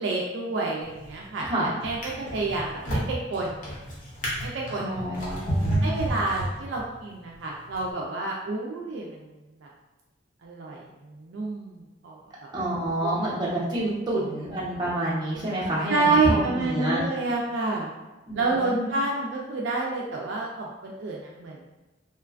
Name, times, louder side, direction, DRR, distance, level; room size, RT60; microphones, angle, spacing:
voice 1, 0.0-1.5 1.8-3.8 4.4-5.4 5.8-9.3 9.6-9.7 10.4-12.2 12.4-12.5 13.0-13.2 13.8-14.2 15.9-17.9 18.3-21.6, right 3 dB, 65° right, -2 dB, 0.3 m, -29 dB
Drawer open or close, 0.8-1.3 1.8-7.0 7.7-7.9, right 1 dB, 40° left, 0.7 m, -30 dB
voice 2, 4.8-6.0 12.5-17.0 18.3-18.9, right 1 dB, 20° right, -8 dB, 0.7 m, -28 dB
3.0 x 2.2 x 2.4 m, 1.1 s
head